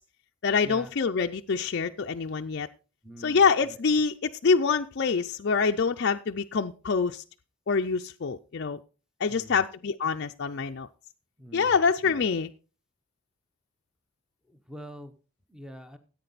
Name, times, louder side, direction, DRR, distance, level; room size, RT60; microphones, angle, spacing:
voice 1, 0.4-2.7 3.2-7.2 7.7-8.8 9.2-10.9 11.5-12.5, left 5 dB, 50° left, 4 dB, 0.4 m, -25 dB
voice 2, 3.0-3.8 9.3-9.6 11.4-11.8 12.0-12.2 14.5-15.1 15.5-16.0, equal, 5° right, 8 dB, 0.9 m, -45 dB
14.5 x 8.4 x 4.0 m, 0.35 s
head